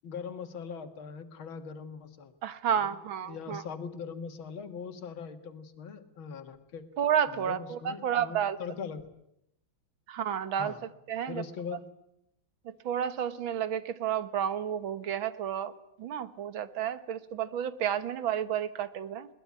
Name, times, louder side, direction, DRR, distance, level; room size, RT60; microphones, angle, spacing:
voice 1, 0.0-2.3 2.8-3.0 3.3-6.8 7.3-9.0 10.6-10.8 11.3-11.8, left 6 dB, 80° left, 9 dB, 2.4 m, -41 dB
voice 2, 2.4-3.6 7.0-8.6 10.1-10.7 11.1-11.4 12.7-15.7 16.0-19.3, right 9 dB, 80° right, 14 dB, 2.0 m, -31 dB
21.5 x 20.0 x 9.6 m, 0.79 s
omnidirectional pair, 2.2 m